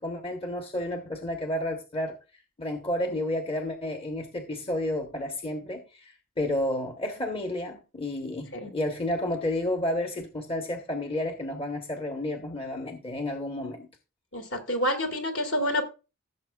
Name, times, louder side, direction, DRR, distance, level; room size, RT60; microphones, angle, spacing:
voice 1, 0.0-2.2 2.6-13.9, left 1 dB, 25° left, 1.1 m, -31 dB
voice 2, 14.3-15.8, equal, 55° left, 2.6 m, -28 dB
16.5 x 7.2 x 2.4 m
head